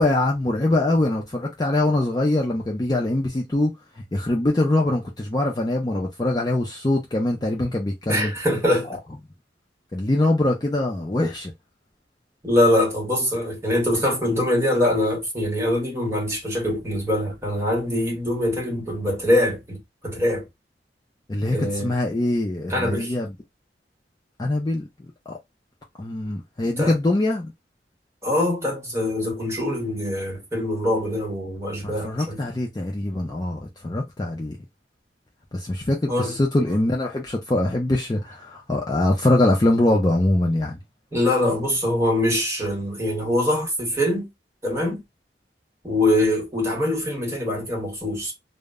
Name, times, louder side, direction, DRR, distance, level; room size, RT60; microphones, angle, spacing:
voice 1, 0.0-3.7 4.1-8.3 9.9-11.5 21.3-23.3 24.4-24.8 25.3-25.4 26.0-27.5 31.8-34.6 35.5-40.8, left 1 dB, 20° left, 0.4 m, -23 dB
voice 2, 8.1-8.9 12.4-20.4 21.5-21.9 22.7-23.1 26.8-27.0 28.2-32.4 36.1-36.4 41.1-44.3 44.6-45.0 45.8-48.3, left 1 dB, 15° right, 0.9 m, -23 dB
2.1 x 2.0 x 3.4 m
head